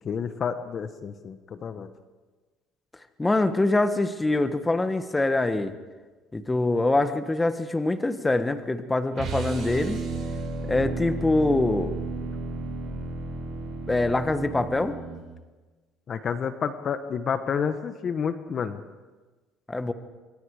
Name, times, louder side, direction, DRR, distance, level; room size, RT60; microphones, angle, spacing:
voice 1, 0.0-1.9 16.1-18.8, left 6 dB, 45° left, 10 dB, 1.3 m, -29 dB
voice 2, 3.2-5.7 6.3-10.0 10.7-11.9 13.9-15.0 19.7-19.9, left 2 dB, 15° left, 10 dB, 1.5 m, -24 dB
sound 1, 9.1-15.3, right 3 dB, 45° right, 8.0 m, -33 dB
26.0 x 24.0 x 5.1 m, 1.3 s
supercardioid pair, 95°, 0 cm